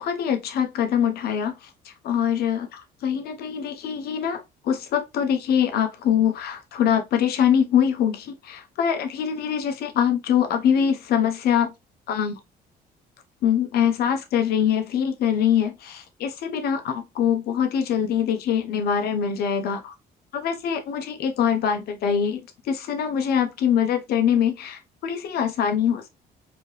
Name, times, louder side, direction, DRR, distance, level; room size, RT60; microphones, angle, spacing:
voice 1, 0.0-1.7 2.0-11.7 12.1-12.3 13.4-19.9 20.3-22.4 22.7-26.1, left 8 dB, 70° left, 0.9 m, -23 dB
4.2 x 2.9 x 3.2 m
cardioid pair, 110°, 17 cm